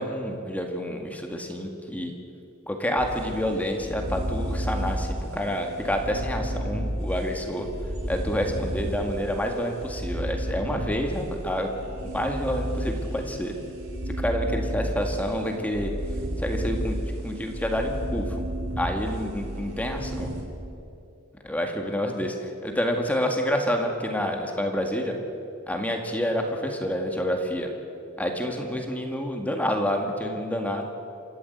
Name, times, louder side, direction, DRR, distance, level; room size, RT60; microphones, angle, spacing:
voice 1, 0.0-2.1 2.7-5.1 5.3-7.7 8.1-11.7 12.1-13.5 14.2-15.9 16.4-17.0 17.2-18.3 18.8-20.3 21.4-22.4 22.6-25.2 25.7-27.7 28.2-30.8, equal, 5° left, 3 dB, 1.9 m, -28 dB
sound 1, 3.0-20.4, equal, 85° right, 4.1 m, -32 dB
28.0 x 13.5 x 8.0 m, 2.6 s
head